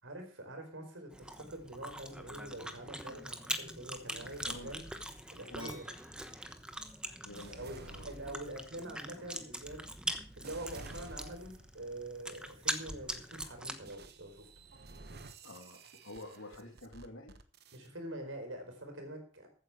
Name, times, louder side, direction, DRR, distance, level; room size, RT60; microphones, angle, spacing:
voice 1, 0.0-4.8 5.3-5.8 7.6-9.9 10.4-14.5 17.7-19.5, right 1 dB, 75° right, 4 dB, 4.5 m, -45 dB
Chewing mastication, 1.1-13.9, right 1 dB, 5° right, 1.0 m, -43 dB
voice 2, 4.0-4.7 5.5-5.7 7.2-8.1 15.4-17.3, left 1 dB, 85° left, 3 dB, 3.0 m, -49 dB
sound 1, 4.1-5.7 6.3-11.8 12.4-12.8 13.9-17.9, right 2 dB, 55° right, 1.2 m, -53 dB
sound 2, 5.6-12.9, left 1 dB, 25° right, 4.1 m, -60 dB
15.0 x 8.9 x 4.9 m, 0.40 s
head